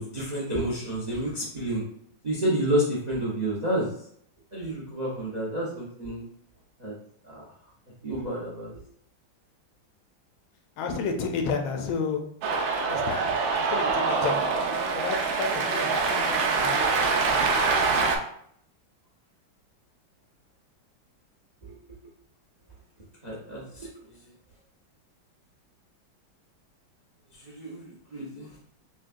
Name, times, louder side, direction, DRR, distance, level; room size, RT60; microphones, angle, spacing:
voice 1, 0.0-1.9 2.2-3.9 4.5-6.2 6.8-7.0 7.3-7.5 8.0-8.8 21.6-21.8 23.2-23.9 27.4-28.5, right 1 dB, 60° right, -5 dB, 0.4 m, -30 dB
voice 2, 10.8-12.3 12.8-14.4 14.9-16.9, left 5 dB, 85° left, 4 dB, 1.5 m, -31 dB
Cheering, 12.4-18.2, right 4 dB, 80° right, 1.3 m, -25 dB
6.1 x 2.3 x 2.5 m, 0.66 s
omnidirectional pair, 2.2 m